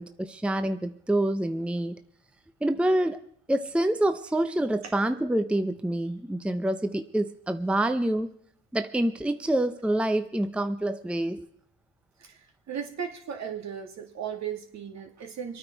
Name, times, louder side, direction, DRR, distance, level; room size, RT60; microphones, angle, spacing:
voice 1, 0.0-2.0 2.6-3.2 3.5-8.3 8.7-11.4, right 1 dB, 5° right, 10 dB, 0.7 m, -27 dB
voice 2, 12.2-15.6, right 8 dB, 65° right, 2 dB, 2.7 m, -36 dB
25.5 x 9.4 x 4.6 m, 0.64 s
cardioid pair, 90°, 30 cm